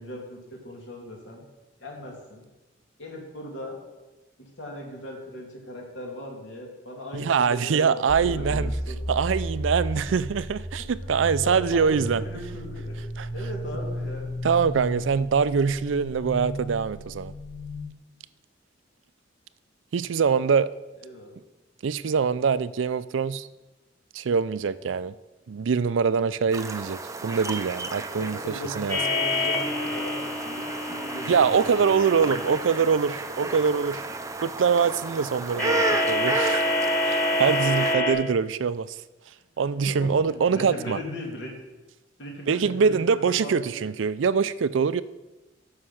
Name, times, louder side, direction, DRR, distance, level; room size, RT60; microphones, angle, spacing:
voice 1, 0.0-1.4 1.8-2.4 3.0-3.7 4.4-9.0 9.9-10.0 11.4-13.0 13.3-14.3 21.0-21.3 28.2-32.6 37.7-37.8 39.8-41.5 42.2-43.9, left 1 dB, 75° left, -1 dB, 2.6 m, -38 dB
voice 2, 7.1-8.7 9.1-12.2 13.2-13.3 14.4-17.3 19.9-20.7 21.8-23.5 24.1-25.1 25.5-28.4 28.8-29.0 31.3-34.0 34.4-36.6 37.0-39.0 39.6-41.0 42.5-45.0, right 6 dB, 90° right, 16 dB, 0.4 m, -24 dB
sound 1, 8.1-17.8, equal, 35° left, 1.9 m, -34 dB
sound 2, 26.5-38.0, right 3 dB, 15° right, 0.5 m, -33 dB
sound 3, 28.9-32.6 35.6-38.1, left 1 dB, 10° left, 1.4 m, -26 dB
9.7 x 6.4 x 5.8 m, 1.1 s
head